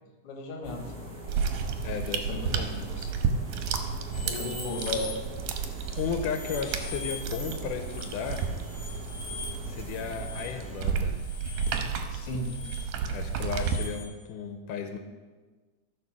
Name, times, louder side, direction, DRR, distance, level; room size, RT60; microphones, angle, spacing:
voice 1, 0.2-0.9 2.3-2.4 2.7-3.1 4.1-5.2 12.1-12.6, left 2 dB, 50° left, 2 dB, 2.2 m, -36 dB
sound 1, 0.6-11.0, right 1 dB, 25° right, 1.7 m, -43 dB
sound 2, 1.3-13.8, right 6 dB, 80° right, 2.3 m, -32 dB
voice 2, 1.8-2.9 4.2-4.8 6.0-8.4 9.7-11.1 13.1-15.0, left 6 dB, 85° left, 6 dB, 2.3 m, -35 dB
sound 3, 4.1-5.1 5.5-14.0, left 3 dB, ahead, 3.5 m, -43 dB
14.0 x 4.8 x 6.0 m, 1.3 s
omnidirectional pair, 3.6 m